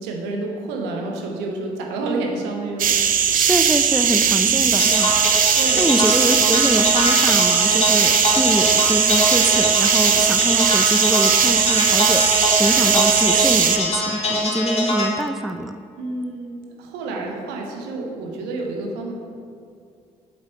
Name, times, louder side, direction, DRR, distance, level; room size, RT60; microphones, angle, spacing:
voice 1, 0.0-3.1 4.2-4.5 5.5-6.0 16.0-19.1, right 2 dB, 70° right, 0 dB, 1.2 m, -29 dB
sound 1, 2.8-13.8, right 8 dB, 45° right, 0.7 m, -18 dB
voice 2, 3.3-5.2 5.8-15.8, right 1 dB, ahead, 8 dB, 0.4 m, -24 dB
sound 2, 4.8-15.1, left 1 dB, 35° left, 2.0 m, -23 dB
8.0 x 7.3 x 3.1 m, 2.3 s
figure-of-eight pair, 45°, 19 cm